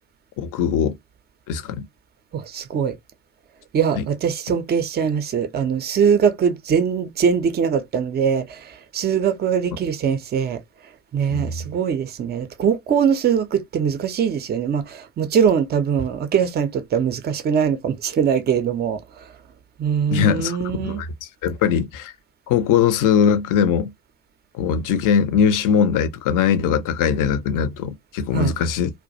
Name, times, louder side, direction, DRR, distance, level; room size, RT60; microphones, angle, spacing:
voice 1, 0.4-1.0 1.5-1.8 3.9-4.0 11.3-11.6 20.1-22.1 22.5-23.9 24.6-28.9, left 7 dB, 45° left, 0.6 m, -21 dB
voice 2, 2.3-3.0 3.7-8.6 8.9-10.6 11.1-19.0 19.8-21.0 28.3-28.5, right 7 dB, 25° right, 0.5 m, -22 dB
2.2 x 2.1 x 2.6 m
figure-of-eight pair, 55°, 46 cm